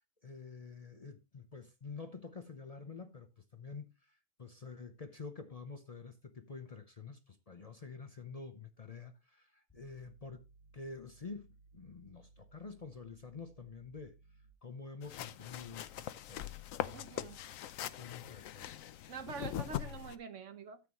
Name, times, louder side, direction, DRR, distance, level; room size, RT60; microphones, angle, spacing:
voice 1, 0.2-10.4 10.7-11.5 11.7-14.2 14.6-16.5 16.9-17.5 17.8-18.8, left 4 dB, 35° left, 0.7 m, -48 dB
sound 1, 9.7-14.5, right 3 dB, 15° left, 1.9 m, -63 dB
sound 2, 15.0-20.2, left 11 dB, 90° left, 1.1 m, -42 dB
voice 2, 16.9-17.4 19.1-20.8, right 5 dB, 70° right, 1.3 m, -45 dB
12.5 x 7.9 x 3.0 m
omnidirectional pair, 1.3 m